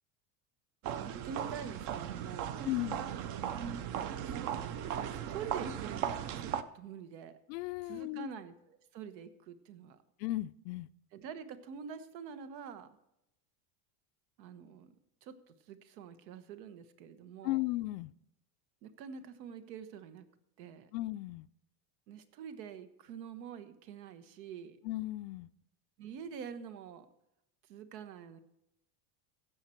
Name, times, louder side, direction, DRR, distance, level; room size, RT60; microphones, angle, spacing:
sound 1, 0.8-6.6, right 9 dB, 40° right, 0.5 m, -37 dB
voice 1, 1.0-2.7 4.1-7.4 7.8-10.0 11.1-12.9 14.4-14.9 15.2-17.6 18.8-20.3 20.6-20.9 22.1-24.8 26.0-27.1 27.6-28.4, right 7 dB, 85° right, 11 dB, 1.3 m, -46 dB
voice 2, 2.6-3.0 7.5-8.3 10.2-10.9 17.4-18.1 20.9-21.5 24.8-25.5, left 18 dB, 80° left, 17 dB, 0.5 m, -35 dB
16.5 x 6.6 x 4.4 m, 0.84 s
supercardioid pair, 160°, 50 cm